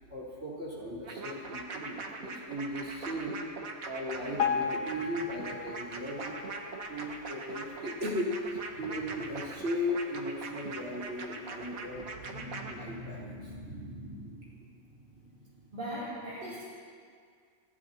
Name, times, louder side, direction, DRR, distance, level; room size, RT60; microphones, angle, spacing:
voice 1, 0.1-3.4 3.8-6.4 6.9-15.5, left 1 dB, 55° right, -6 dB, 4.6 m, -37 dB
sound 1, 1.0-12.7, right 4 dB, 90° right, 1.6 m, -41 dB
Piano, 4.4-7.5 8.0-8.2 8.5-8.6 9.3-9.4 9.9-10.0, left 6 dB, 85° left, 1.2 m, -35 dB
voice 2, 15.7-16.6, right 1 dB, 40° right, -10 dB, 3.6 m, -38 dB
22.5 x 16.5 x 2.9 m, 2.1 s
omnidirectional pair, 1.4 m